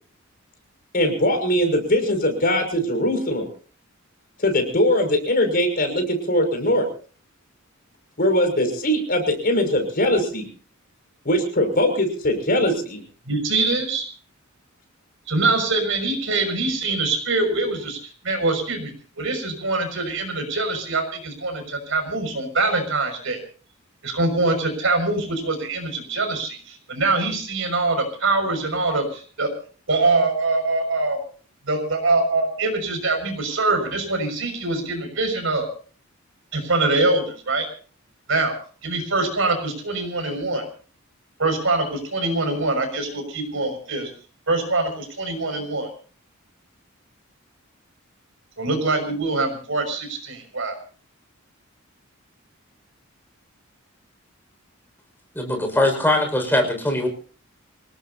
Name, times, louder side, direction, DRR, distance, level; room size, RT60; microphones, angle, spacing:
voice 1, 0.9-3.5 4.4-6.9 8.2-10.5 11.2-13.0, left 1 dB, 45° left, 5 dB, 6.0 m, -21 dB
voice 2, 13.3-14.0 15.3-18.0 18.2-23.4 24.0-29.5 29.9-31.2 31.7-35.7 36.5-37.7 38.3-38.6 38.8-40.6 41.4-44.1 44.5-45.9 48.6-50.7, right 3 dB, 65° right, 6 dB, 6.1 m, -23 dB
voice 3, 55.3-57.1, left 1 dB, 10° left, 3 dB, 5.6 m, -21 dB
26.5 x 18.0 x 2.8 m, 0.40 s
head